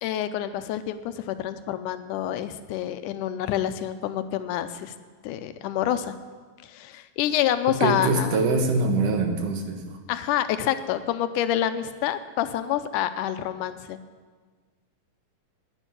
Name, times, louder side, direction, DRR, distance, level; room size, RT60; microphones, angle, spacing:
voice 1, 0.0-4.9 5.2-6.1 6.6-8.4 10.1-14.0, left 11 dB, 85° left, 10 dB, 2.1 m, -27 dB
voice 2, 7.8-9.8, right 3 dB, 75° right, 4 dB, 3.0 m, -23 dB
11.0 x 9.8 x 9.7 m, 1.4 s
omnidirectional pair, 3.7 m